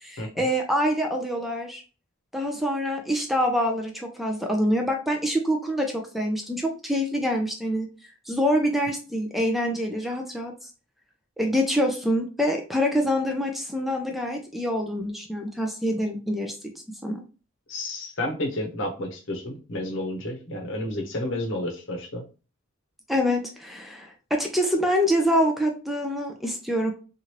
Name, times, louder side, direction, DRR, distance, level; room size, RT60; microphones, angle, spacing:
voice 1, 0.0-1.8 2.3-10.5 11.4-16.5 17.0-17.2 23.1-26.9, equal, ahead, 2 dB, 0.4 m, -25 dB
voice 2, 17.7-22.2, left 1 dB, 65° left, 1 dB, 0.8 m, -31 dB
3.1 x 2.4 x 2.8 m, 0.34 s
head